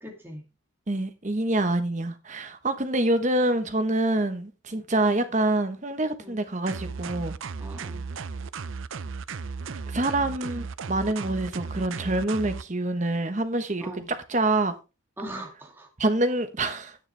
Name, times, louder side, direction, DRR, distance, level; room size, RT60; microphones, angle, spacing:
voice 1, 0.0-0.4 4.7-4.8 6.2-6.4 7.6-8.0 13.8-14.1 15.2-15.9, right 1 dB, 10° right, 2.2 m, -40 dB
voice 2, 0.9-7.4 9.9-13.9 14.3-14.7 16.0-17.0, right 2 dB, 35° right, 1.1 m, -26 dB
sound 1, 6.7-12.6, right 4 dB, 75° right, 0.6 m, -35 dB
10.5 x 9.5 x 3.3 m
head